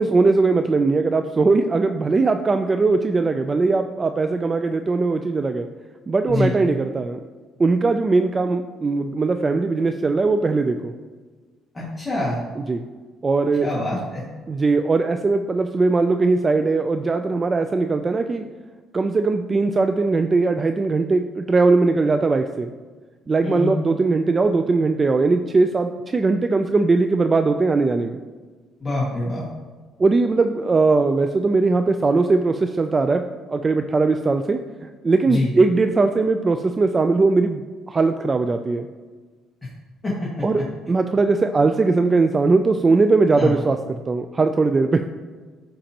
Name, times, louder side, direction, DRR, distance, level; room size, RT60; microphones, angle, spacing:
voice 1, 0.0-5.7 6.1-7.2 7.6-10.9 12.6-12.8 13.2-13.7 14.5-18.4 18.9-22.7 23.3-28.2 30.0-33.2 33.5-34.6 35.0-38.9 40.4-43.8 44.1-45.0, right 3 dB, 25° right, 7 dB, 0.4 m, -20 dB
voice 2, 11.7-12.4 13.6-14.2 23.4-23.7 28.8-29.5 35.3-35.5 40.0-40.1 43.4-43.5, left 2 dB, 15° left, -7 dB, 2.0 m, -25 dB
14.0 x 5.1 x 2.9 m, 1.4 s
cardioid pair, 115°, 0 cm